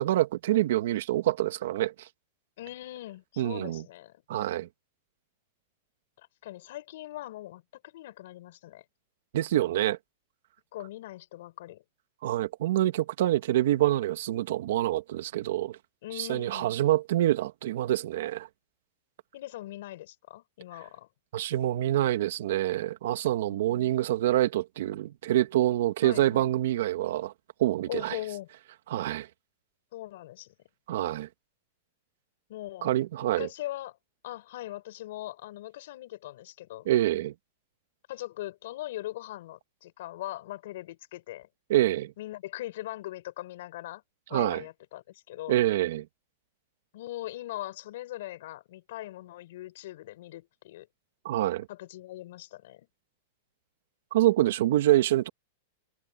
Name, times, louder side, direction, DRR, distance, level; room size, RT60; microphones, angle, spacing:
voice 1, 0.0-2.1 3.4-3.8 4.3-4.7 9.3-10.0 12.2-15.8 16.2-18.5 21.3-27.3 27.6-28.2 28.9-29.3 30.9-31.3 32.8-33.5 36.9-37.3 41.7-42.1 44.3-44.6 45.5-46.1 51.2-51.7 54.1-55.3, right 14 dB, 65° right, 2.0 m, -26 dB
voice 2, 2.6-4.1 6.4-8.8 10.7-11.8 16.0-16.7 19.3-21.1 23.4-24.0 26.0-26.5 27.9-28.5 29.9-30.5 32.5-32.9 33.2-34.0 34.2-36.9 38.1-41.5 42.2-44.0 44.3-45.5 46.9-50.9 51.7-52.9, left 15 dB, 60° left, 5.5 m, -40 dB
supercardioid pair, 165°, 0 cm